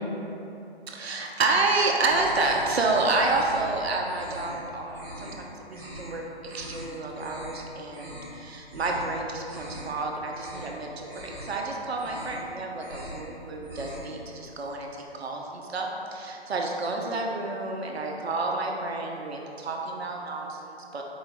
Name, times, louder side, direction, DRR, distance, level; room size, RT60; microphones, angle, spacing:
voice 1, 0.9-21.0, right 3 dB, 70° right, 0 dB, 0.6 m, -29 dB
sound 1, 2.1-3.8 4.1-4.6 4.9-5.3 5.7-6.1 6.4-6.8 7.1-7.6 7.9-8.3 8.7-9.1 9.4-10.0 10.3-10.7 11.0-11.6 11.9-12.4 12.7-13.2 13.5-14.1, equal, 15° right, 1.5 m, -42 dB
4.5 x 2.9 x 3.3 m, 2.9 s
figure-of-eight pair, 145°, 33 cm